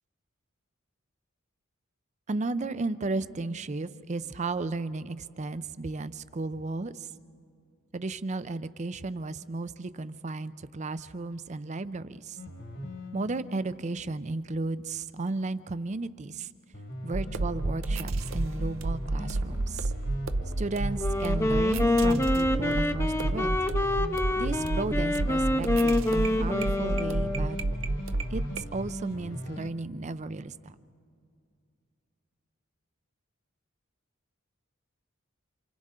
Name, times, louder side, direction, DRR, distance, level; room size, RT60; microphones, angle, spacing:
voice 1, 2.3-7.1 7.9-12.4 13.1-16.5 17.0-19.9 20.6-23.5 24.4-27.6 28.3-30.7, right 3 dB, 35° right, 14 dB, 0.5 m, -34 dB
sound 1, 12.4-14.4 16.7-29.7, equal, 60° left, 1.8 m, -40 dB
sound 2, 17.1-28.6, right 2 dB, 75° right, 0.8 m, -31 dB
Wind instrument woodwind instrument, 21.0-27.7, left 1 dB, 15° left, 0.6 m, -27 dB
28.5 x 27.5 x 3.7 m, 2.4 s
head